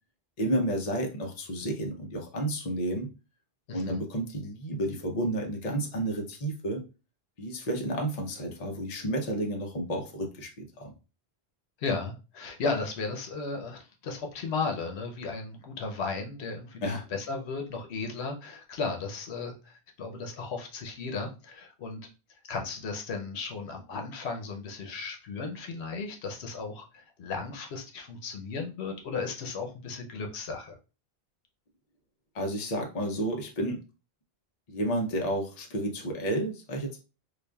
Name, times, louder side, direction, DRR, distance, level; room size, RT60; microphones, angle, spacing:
voice 1, 0.4-3.1 3.7-6.8 7.4-10.9 16.8-17.0 32.3-33.8 34.7-37.0, right 1 dB, 40° left, 1 dB, 0.7 m, -31 dB
voice 2, 3.7-4.0 11.8-22.0 22.5-30.8, left 4 dB, 85° left, 3 dB, 1.0 m, -35 dB
4.8 x 2.4 x 2.3 m, 0.31 s
omnidirectional pair, 1.1 m